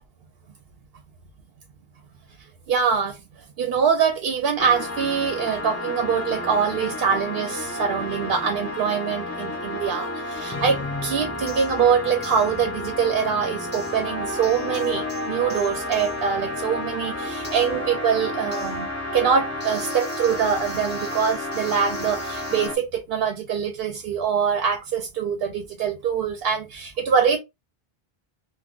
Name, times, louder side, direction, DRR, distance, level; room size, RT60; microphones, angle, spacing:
voice 1, 2.7-3.2 3.6-27.4, right 7 dB, 70° right, 0.7 m, -24 dB
sound 1, 4.6-22.7, left 2 dB, 20° left, 0.5 m, -31 dB
sound 2, 11.5-11.8 12.2-12.6 13.7-14.1 14.4-22.7, right 1 dB, 10° right, 1.1 m, -45 dB
3.6 x 2.2 x 2.3 m
omnidirectional pair, 1.0 m